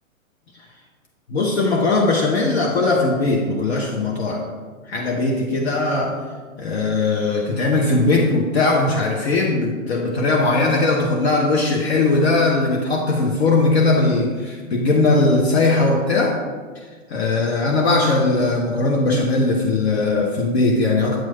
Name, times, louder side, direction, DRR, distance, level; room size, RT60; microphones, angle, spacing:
voice 1, 1.3-4.5 4.9-6.2 6.6-16.4 17.1-21.2, left 3 dB, 50° left, 0 dB, 0.9 m, -19 dB
7.7 x 3.1 x 5.5 m, 1.5 s
figure-of-eight pair, 120°, 42 cm